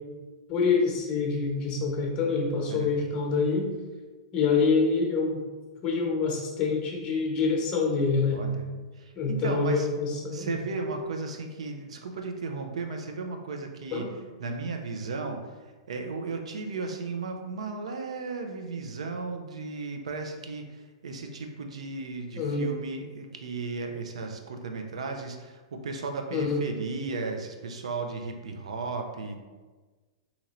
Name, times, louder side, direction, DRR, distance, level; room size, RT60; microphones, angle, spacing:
voice 1, 0.5-3.7 4.3-5.4 5.8-8.4 9.1-10.7 13.9-14.2 22.4-22.7 26.3-26.6, left 4 dB, 30° left, 0 dB, 0.9 m, -26 dB
voice 2, 8.3-8.7 8.9-9.9 10.3-14.1 14.4-29.4, right 3 dB, 85° right, 4 dB, 0.5 m, -35 dB
2.9 x 2.5 x 4.2 m, 1.3 s
hypercardioid pair, 130°, 3 cm